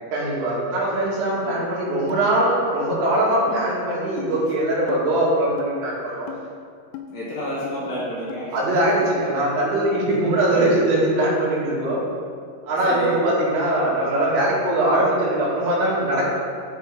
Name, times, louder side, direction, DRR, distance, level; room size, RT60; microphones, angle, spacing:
voice 1, 0.1-6.3 8.5-12.0 12.6-16.3, right 1 dB, 85° right, -6 dB, 4.4 m, -21 dB
sound 1, 2.1-2.2 2.8-2.9 3.5-3.6 4.2-4.3 4.9-5.0 5.6-5.7 6.3-6.4 6.9-7.1 7.6-7.8 8.3-8.4 9.0-9.1, left 10 dB, 85° left, 2.9 m, -36 dB
voice 2, 7.1-8.6 12.8-13.2, equal, 60° left, -8 dB, 2.8 m, -30 dB
13.0 x 5.4 x 3.6 m, 2.2 s
omnidirectional pair, 5.6 m